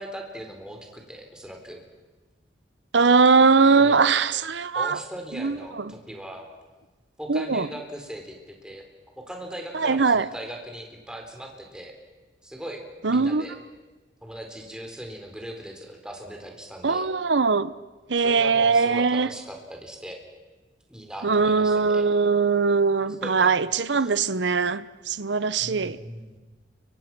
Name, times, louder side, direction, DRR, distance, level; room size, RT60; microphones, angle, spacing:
voice 1, 0.0-1.8 3.8-4.2 4.7-6.5 7.2-8.4 8.6-8.8 9.3-11.9 12.4-12.8 13.1-13.6 14.2-17.1 18.2-20.2 20.9-22.0 23.2-23.5 23.9-24.1 25.6-26.4, right 1 dB, 5° right, 4.0 m, -39 dB
voice 2, 2.9-5.0 5.4-5.8 7.3-7.7 9.7-10.3 13.0-13.4 16.8-17.7 18.1-19.3 21.2-26.0, right 4 dB, 70° right, 0.9 m, -21 dB
30.0 x 24.5 x 6.1 m
head